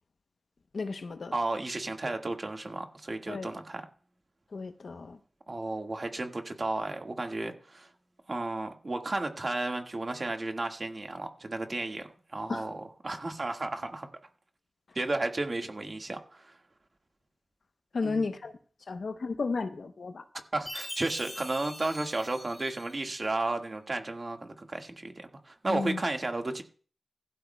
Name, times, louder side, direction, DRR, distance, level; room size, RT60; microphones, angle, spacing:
voice 1, 0.7-1.3 3.3-3.5 4.5-5.2 12.5-12.7 17.9-18.5 18.9-20.2 25.7-26.0, left 4 dB, 75° left, 0.8 m, -33 dB
voice 2, 1.3-3.8 5.5-7.9 8.3-14.1 14.9-16.5 18.0-18.2 20.5-26.6, right 2 dB, 40° right, 1.6 m, -33 dB
Chime, 20.7-23.1, left 1 dB, 15° left, 3.0 m, -43 dB
16.5 x 15.0 x 2.2 m
wide cardioid pair, 90°, 0 cm